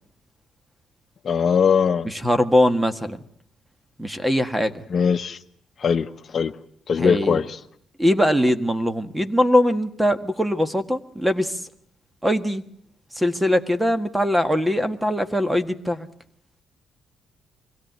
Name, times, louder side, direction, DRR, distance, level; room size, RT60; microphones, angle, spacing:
voice 1, 1.2-2.1 4.9-5.4 5.8-6.1 6.3-6.5 6.9-7.6, left 6 dB, 50° left, 1.0 m, -20 dB
voice 2, 2.1-3.2 4.0-4.8 7.0-7.4 8.0-11.6 12.2-12.6 13.2-16.1, equal, 5° right, 1.6 m, -21 dB
24.0 x 16.5 x 9.3 m
cardioid pair, 90°, 0 cm